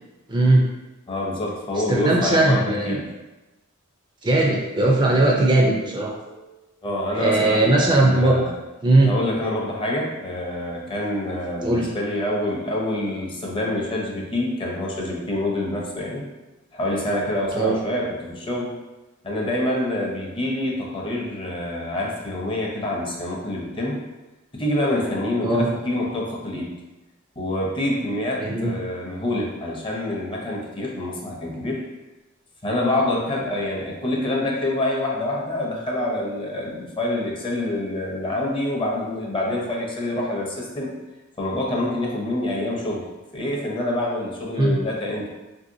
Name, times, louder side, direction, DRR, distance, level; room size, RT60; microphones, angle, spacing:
voice 1, 0.3-0.6 1.9-3.0 4.2-6.1 7.2-8.4 8.8-9.1 11.6-11.9 17.6-17.8 25.4-25.7 28.4-28.7 44.6-44.8, right 2 dB, 20° right, -1 dB, 0.3 m, -19 dB
voice 2, 1.1-3.0 6.1-8.5 9.0-16.2 16.7-18.7 19.2-24.0 24.5-26.7 27.4-31.8 32.6-41.0 41.4-43.1 43.3-45.3, left 1 dB, 25° left, -2 dB, 0.5 m, -26 dB
3.2 x 2.7 x 2.6 m, 1.1 s
head